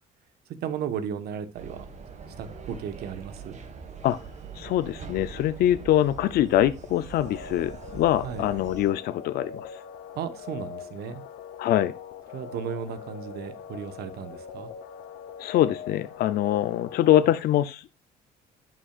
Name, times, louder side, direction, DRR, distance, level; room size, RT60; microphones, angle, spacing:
voice 1, 0.6-1.9 2.4-3.6 8.2-8.5 10.1-11.2 12.3-14.7, right 7 dB, 70° right, 1.2 m, -35 dB
sound 1, 1.5-8.9, right 6 dB, 45° right, 1.7 m, -42 dB
voice 2, 4.6-9.8 11.6-11.9 15.4-17.9, left 12 dB, 70° left, 0.6 m, -24 dB
sound 2, 7.1-17.3, left 7 dB, 85° left, 1.0 m, -42 dB
11.0 x 6.3 x 2.4 m
cardioid pair, 110°, 17 cm